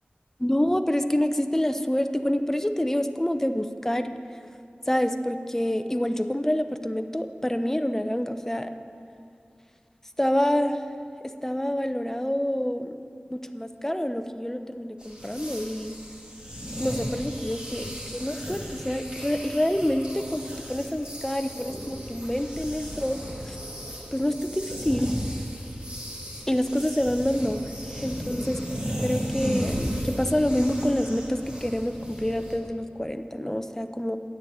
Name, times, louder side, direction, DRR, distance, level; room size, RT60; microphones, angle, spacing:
voice 1, 0.4-4.1 4.9-8.7 10.2-10.8 11.2-13.0 13.3-15.9 16.8-23.6 24.1-25.2 26.5-28.6 29.0-34.2, left 1 dB, 10° left, 8 dB, 0.6 m, -27 dB
sound 1, 15.0-32.6, equal, 30° right, 2.3 m, -35 dB
9.1 x 6.7 x 8.7 m, 2.4 s
wide cardioid pair, 50°, 4 cm